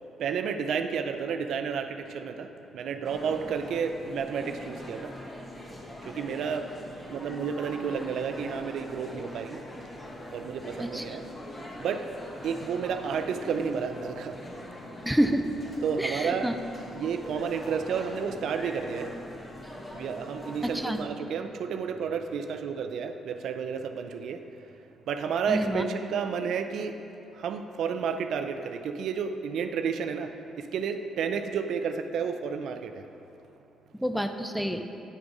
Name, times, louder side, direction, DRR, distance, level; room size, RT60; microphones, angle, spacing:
voice 1, 0.1-5.1 6.0-9.6 10.3-11.3 11.8-12.1 12.4-14.4 15.8-16.5 16.9-19.1 19.9-24.7 25.1-27.0 27.3-33.1, right 6 dB, 75° right, 7 dB, 0.4 m, -31 dB
sound 1, 3.0-21.1, left 1 dB, 25° left, 1.0 m, -42 dB
voice 2, 10.8-11.2 15.0-15.4 16.0-16.5 20.6-21.0 25.5-25.8 34.0-34.8, equal, ahead, 6 dB, 0.4 m, -28 dB
9.1 x 3.5 x 5.3 m, 2.8 s
cardioid pair, 90°, 0 cm